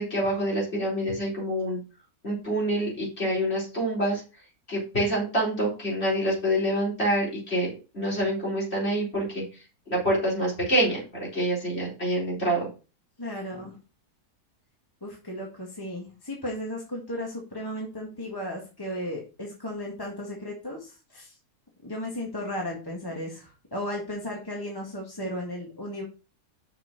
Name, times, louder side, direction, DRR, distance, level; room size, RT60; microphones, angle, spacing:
voice 1, 0.0-1.8 2.2-4.2 4.7-9.4 9.9-12.7, right 1 dB, 40° left, -3 dB, 4.8 m, -26 dB
voice 2, 13.2-13.7 15.0-21.3 21.8-26.0, left 1 dB, 15° left, -2 dB, 1.9 m, -35 dB
6.7 x 6.0 x 6.0 m, 0.34 s
omnidirectional pair, 1.7 m